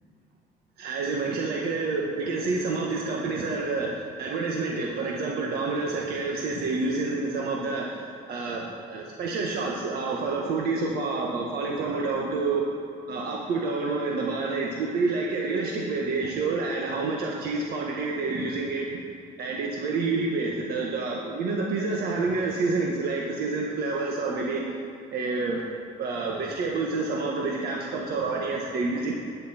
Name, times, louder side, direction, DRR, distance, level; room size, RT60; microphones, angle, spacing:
voice 1, 0.8-8.0 8.3-12.6 13.1-19.0 19.4-24.6 25.1-25.6 26.0-29.2, right 3 dB, 65° right, -1 dB, 1.6 m, -28 dB
20.0 x 9.8 x 4.5 m, 2.6 s
cardioid pair, 110°, 17 cm